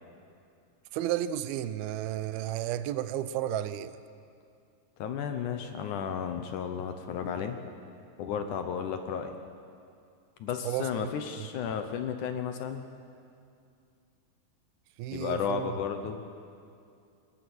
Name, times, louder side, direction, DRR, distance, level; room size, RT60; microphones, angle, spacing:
voice 1, 0.9-4.0 10.6-11.1 15.0-15.8, right 12 dB, 85° right, 14 dB, 2.6 m, -32 dB
voice 2, 5.0-7.6 8.2-9.3 10.4-12.9 15.1-16.2, left 7 dB, 70° left, 7 dB, 2.2 m, -33 dB
22.5 x 20.5 x 6.3 m, 2.4 s
omnidirectional pair, 4.2 m